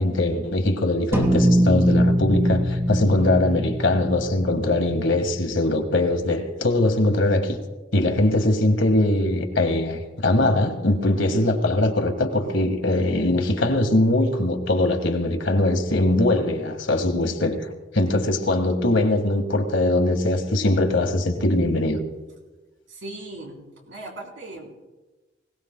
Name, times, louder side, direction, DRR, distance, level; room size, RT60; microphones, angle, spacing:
voice 1, 0.0-7.6 7.9-17.6 17.9-22.0, left 1 dB, 70° left, 1.7 m, -21 dB
sound 1, 1.1-5.7, equal, 15° right, 1.7 m, -22 dB
voice 2, 22.9-24.9, right 2 dB, 75° right, 3.7 m, -38 dB
25.0 x 17.5 x 2.2 m
head